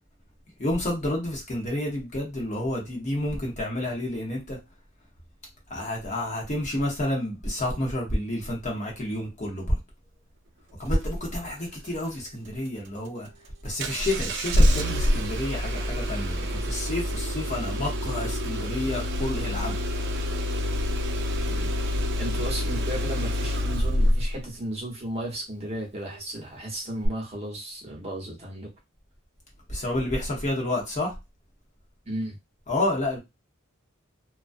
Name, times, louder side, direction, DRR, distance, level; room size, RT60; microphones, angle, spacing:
voice 1, 0.6-4.6 5.7-9.8 10.8-13.3 13.6-19.8 21.5-21.7 29.7-31.1 32.7-33.2, left 1 dB, 35° left, 0.8 m, -29 dB
Engine starting, 13.8-24.4 27.0-27.1, equal, 55° right, 0.4 m, -26 dB
voice 2, 22.2-28.7 32.0-32.4, right 1 dB, 30° right, 0.8 m, -34 dB
2.3 x 2.1 x 2.5 m
head